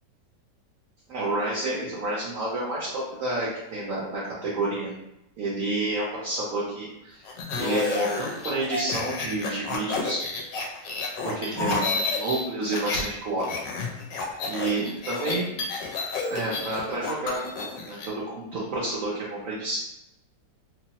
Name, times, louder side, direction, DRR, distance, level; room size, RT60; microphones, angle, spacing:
voice 1, 1.1-4.9 5.4-7.2 7.6-10.2 11.2-13.6 14.4-15.5 16.3-17.4 17.8-18.2 18.5-19.8, right 2 dB, 60° right, -7 dB, 0.9 m, -29 dB
sound 1, 7.2-13.1 13.4-18.1, left 4 dB, 85° left, 1.2 m, -30 dB
3.0 x 2.0 x 2.8 m, 0.85 s
omnidirectional pair, 1.9 m